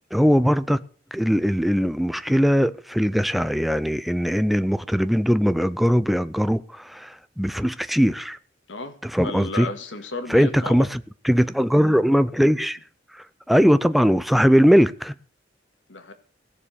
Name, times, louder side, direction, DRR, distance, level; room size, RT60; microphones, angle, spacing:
voice 1, 0.1-0.8 1.1-8.4 9.0-9.7 10.3-12.8 13.5-15.1, equal, ahead, 0.6 m, -20 dB
voice 2, 9.2-10.9 15.9-16.1, left 3 dB, 75° left, 1.9 m, -33 dB
17.5 x 7.2 x 6.8 m
head